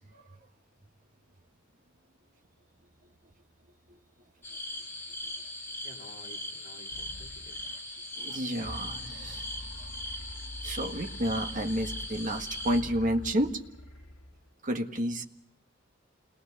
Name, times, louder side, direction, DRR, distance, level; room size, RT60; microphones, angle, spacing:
sound 1, 4.4-12.8, left 1 dB, 10° left, 4.4 m, -40 dB
voice 1, 5.8-7.6, left 1 dB, 35° left, -3 dB, 3.5 m, -52 dB
sound 2, 6.9-8.0 8.6-14.5, left 1 dB, 75° left, 1.4 m, -45 dB
voice 2, 8.2-9.4 10.6-13.5 14.6-15.2, equal, 40° right, 4 dB, 1.6 m, -30 dB
28.5 x 19.5 x 6.9 m, 0.77 s
head